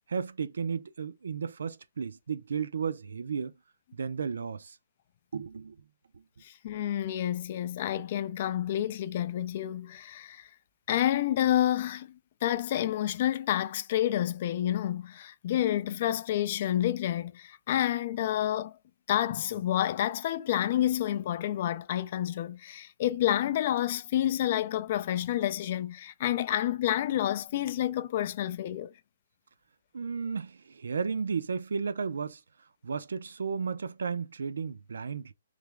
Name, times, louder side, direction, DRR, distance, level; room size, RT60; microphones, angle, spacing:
voice 1, 0.1-3.5 3.9-4.8 5.3-5.8 6.1-6.2 29.9-32.4 32.8-35.3, right 6 dB, 75° right, 0.5 m, -33 dB
voice 2, 6.4-10.5 10.9-12.1 12.4-18.8 19.1-28.9, left 12 dB, 35° left, 0.3 m, -29 dB
3.3 x 3.0 x 3.5 m
hypercardioid pair, 170°, 0 cm